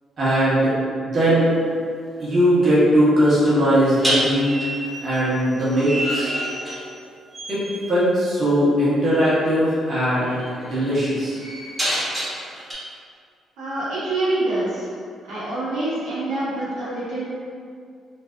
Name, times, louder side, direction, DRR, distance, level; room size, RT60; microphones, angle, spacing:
voice 1, 0.2-0.7 1.0-1.5 2.2-4.7 5.0-6.3 7.5-7.6 7.9-11.4, equal, 45° right, -10 dB, 0.9 m, -19 dB
sound 1, 1.4-1.6 4.0-7.1 7.3-7.8 9.2-9.4 9.9-12.7, right 1 dB, 10° right, 0.8 m, -28 dB
voice 2, 13.6-14.9 15.2-17.3, right 2 dB, 90° right, -11 dB, 0.9 m, -26 dB
2.6 x 2.3 x 2.2 m, 2.2 s
cardioid pair, 90°, 0 cm